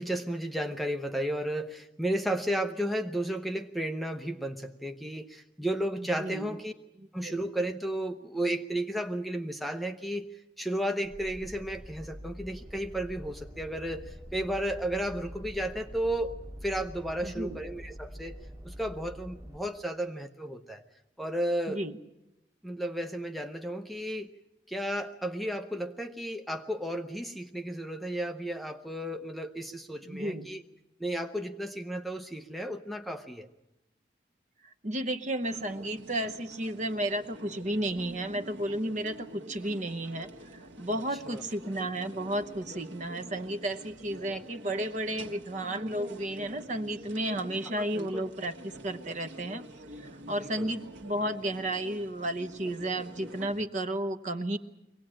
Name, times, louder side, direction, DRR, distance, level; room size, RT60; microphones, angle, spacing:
voice 1, 0.0-6.7 7.1-10.3 10.6-18.4 18.6-20.8 21.2-21.8 22.6-24.3 24.7-30.6 31.0-33.5 41.2-41.4 47.8-48.3 50.4-50.7, right 1 dB, ahead, 5 dB, 0.7 m, -33 dB
voice 2, 6.0-6.6 7.0-7.4 17.2-17.6 21.7-22.0 30.0-30.5 34.6-49.7 50.0-54.6, right 1 dB, 40° right, 9 dB, 1.0 m, -33 dB
sound 1, 11.0-19.6, equal, 15° right, 2.2 m, -45 dB
sound 2, 35.4-53.7, right 1 dB, 85° right, 1.4 m, -47 dB
23.5 x 18.0 x 8.8 m, 0.94 s
head